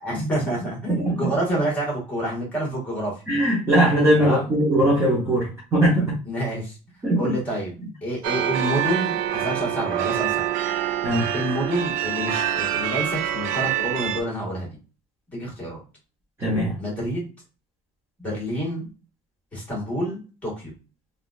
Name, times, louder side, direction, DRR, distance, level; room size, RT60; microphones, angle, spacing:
voice 1, 0.0-3.2 4.2-4.5 6.3-6.8 7.2-10.5 11.3-14.7 15.3-15.8 16.8-17.3 18.2-18.9 19.5-20.7, right 1 dB, 10° left, -3 dB, 1.6 m, -28 dB
voice 2, 0.9-1.2 3.3-6.1 7.0-7.3 11.0-11.2 16.4-16.7, right 1 dB, 15° right, -6 dB, 0.9 m, -20 dB
sound 1, 8.2-14.2, right 10 dB, 65° right, 0.4 m, -26 dB
3.7 x 2.4 x 2.4 m, 0.33 s
cardioid pair, 165°, 15 cm